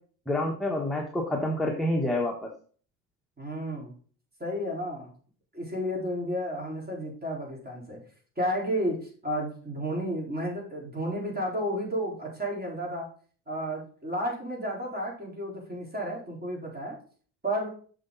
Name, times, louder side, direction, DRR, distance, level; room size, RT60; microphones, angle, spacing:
voice 1, 0.3-2.5, left 1 dB, ahead, -1 dB, 1.3 m, -28 dB
voice 2, 3.4-3.9 4.4-5.1 5.5-8.0 8.4-13.1 13.5-17.0 17.4-17.7, equal, 20° right, -2 dB, 4.3 m, -32 dB
6.8 x 6.3 x 4.1 m, 0.43 s
cardioid pair, 105°, 40 cm